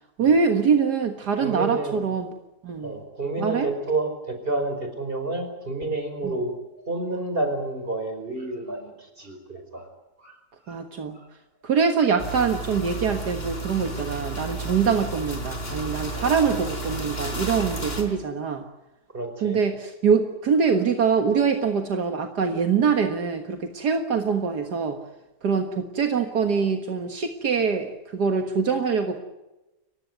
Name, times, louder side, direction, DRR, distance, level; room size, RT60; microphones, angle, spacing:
voice 1, 0.2-2.3 2.6-3.0 3.4-3.7 6.2-6.3 10.7-11.2 11.6-18.6 19.4-25.0 25.4-29.2, right 6 dB, 70° right, 5 dB, 2.1 m, -24 dB
voice 2, 1.4-2.0 2.8-6.5 6.9-9.9 10.2-10.4 10.7-10.8 11.1-11.3 16.1-16.3 19.1-19.6, right 2 dB, 30° right, 6 dB, 5.2 m, -29 dB
sound 1, 12.2-18.0, right 2 dB, 35° left, 4.6 m, -32 dB
30.0 x 16.0 x 9.2 m, 1.0 s
omnidirectional pair, 1.8 m